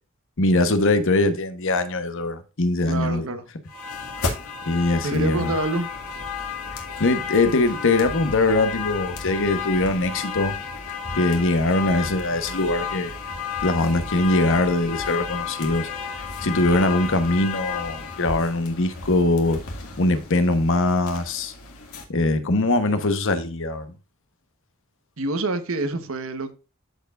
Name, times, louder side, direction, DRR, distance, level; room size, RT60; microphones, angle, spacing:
voice 1, 0.4-3.2 4.7-5.5 7.0-10.6 11.2-13.1 13.6-15.9 16.4-19.6 20.0-21.5 22.1-23.9, left 2 dB, 65° left, 1.0 m, -22 dB
voice 2, 2.8-3.4 5.0-5.9 25.2-26.5, right 2 dB, 70° right, 1.1 m, -26 dB
sound 1, 3.7-22.0, left 6 dB, 85° left, 1.9 m, -32 dB
13.0 x 4.6 x 2.4 m
head